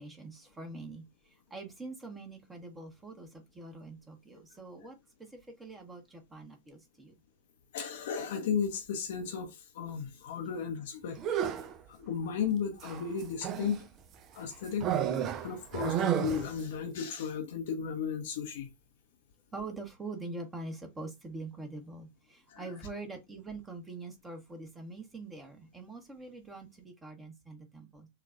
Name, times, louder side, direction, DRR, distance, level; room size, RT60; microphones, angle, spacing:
voice 1, 0.0-7.1 19.5-28.1, right 3 dB, 15° right, 1.0 m, -44 dB
voice 2, 7.7-11.2 11.9-13.8 14.3-14.9 15.4-18.7 22.5-22.6, left 7 dB, 55° left, 0.7 m, -34 dB
sound 1, 11.2-11.8 12.8-13.8 14.8-16.6, right 9 dB, 35° right, 0.5 m, -31 dB
6.5 x 2.3 x 2.4 m
figure-of-eight pair, 90°, 0 cm